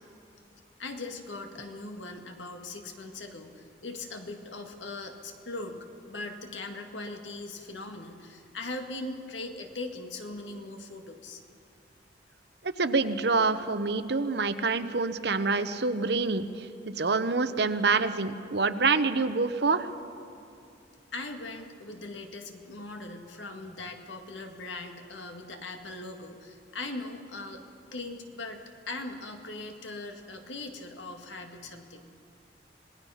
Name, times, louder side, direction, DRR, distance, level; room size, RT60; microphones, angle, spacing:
voice 1, 0.8-11.4 21.1-27.7 27.9-32.1, left 2 dB, 85° left, 4 dB, 2.0 m, -40 dB
voice 2, 12.6-19.9, right 4 dB, 60° right, 11 dB, 0.9 m, -26 dB
26.5 x 18.5 x 5.7 m, 2.7 s
head